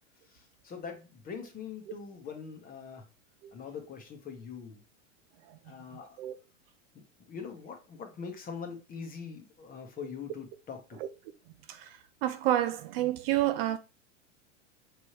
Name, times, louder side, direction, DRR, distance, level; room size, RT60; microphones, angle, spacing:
voice 1, 0.3-3.1 3.5-4.8 5.6-6.2 7.3-11.0, left 6 dB, 25° left, 0.9 m, -43 dB
voice 2, 11.7-13.8, right 13 dB, 50° right, 0.5 m, -29 dB
5.3 x 3.2 x 2.9 m
hypercardioid pair, 125°, 38 cm